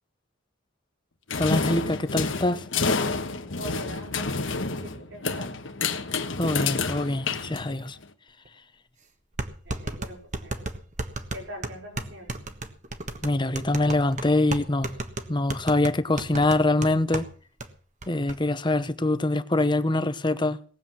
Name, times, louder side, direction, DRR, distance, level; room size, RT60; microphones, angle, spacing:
sound 1, 1.3-8.0, left 4 dB, 85° left, 1.4 m, -29 dB
voice 1, 1.4-2.6 6.4-8.0 13.2-14.9 15.3-17.3 18.1-20.6, left 2 dB, 25° left, 0.9 m, -24 dB
voice 2, 3.6-5.5 9.7-10.6 11.3-12.3, equal, 75° right, 5.4 m, -42 dB
sound 2, 8.5-8.6 9.4-17.3 17.6-17.7 18.0-18.4, right 2 dB, 40° right, 1.4 m, -33 dB
18.5 x 7.8 x 7.6 m
head